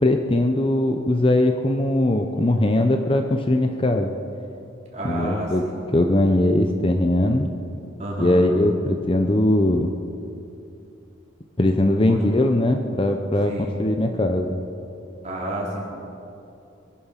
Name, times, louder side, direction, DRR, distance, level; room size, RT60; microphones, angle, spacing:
voice 1, 0.0-4.2 5.0-5.6 5.9-7.5 8.2-9.9 11.6-14.6, left 1 dB, 25° left, 5 dB, 0.7 m, -20 dB
voice 2, 4.9-5.8 8.0-8.4 12.1-12.2 13.5-13.7 15.2-15.8, right 1 dB, 35° right, -4 dB, 3.9 m, -30 dB
22.5 x 11.0 x 5.8 m, 2.7 s
head